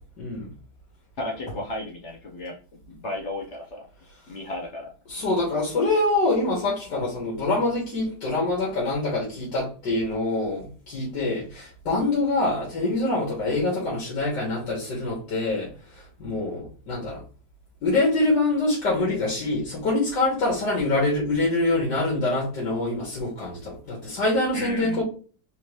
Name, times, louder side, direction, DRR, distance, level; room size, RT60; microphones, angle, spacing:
voice 1, 0.2-0.5 5.1-17.2 17.8-25.0, left 2 dB, 65° left, 2.1 m, -25 dB
voice 2, 1.2-2.6 2.9-3.9 4.3-4.9 24.5-25.0, left 2 dB, 45° left, 1.0 m, -33 dB
4.3 x 2.7 x 3.2 m
omnidirectional pair, 2.0 m